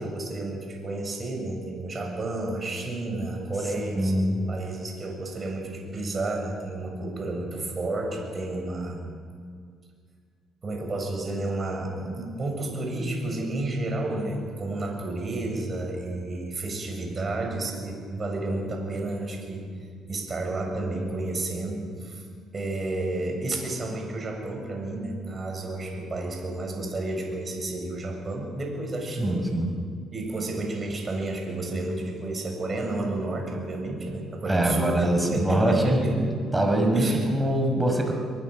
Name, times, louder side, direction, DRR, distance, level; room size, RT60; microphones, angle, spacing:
voice 1, 0.0-9.0 10.6-19.7 20.1-22.2 22.5-29.5 30.1-36.2 36.9-37.3, right 2 dB, 35° right, 2 dB, 7.4 m, -31 dB
voice 2, 3.9-4.5 29.2-29.7 34.5-36.3 36.5-38.1, right 1 dB, 10° right, 2 dB, 5.8 m, -23 dB
23.0 x 22.5 x 6.6 m, 2.1 s
hypercardioid pair, 50°, 0 cm